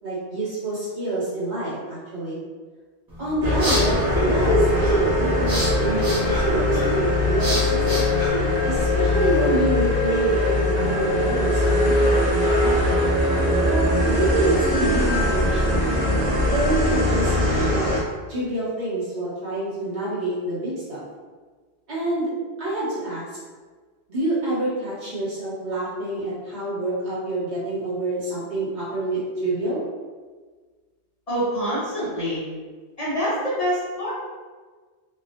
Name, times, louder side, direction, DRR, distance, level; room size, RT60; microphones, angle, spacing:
voice 1, 0.0-2.4 3.2-4.9 5.2-8.1 8.6-12.8 13.6-15.9 16.5-17.9 18.3-21.0 21.9-22.3 22.6-23.3 24.1-29.8, right 1 dB, 80° right, -9 dB, 1.4 m, -27 dB
sound 1, 3.1-9.0, right 1 dB, 25° right, 0.5 m, -26 dB
sound 2, 3.4-18.0, left 1 dB, 60° right, 0.9 m, -21 dB
voice 2, 31.3-32.4 33.0-34.1, equal, 40° left, -9 dB, 0.7 m, -25 dB
2.8 x 2.1 x 2.6 m, 1.4 s
omnidirectional pair, 1.1 m